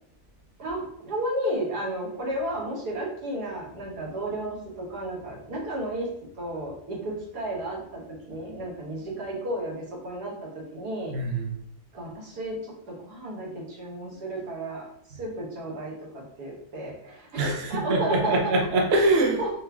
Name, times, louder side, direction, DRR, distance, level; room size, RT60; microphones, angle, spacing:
voice 1, 0.6-6.1 6.4-8.0 8.3-10.3 10.7-11.1 11.9-18.4 19.4-19.5, right 1 dB, 85° right, -3 dB, 1.8 m, -33 dB
voice 2, 11.1-11.6 17.4-19.4, right 2 dB, 50° right, 0 dB, 0.9 m, -24 dB
4.7 x 2.5 x 3.4 m, 0.69 s
omnidirectional pair, 1.7 m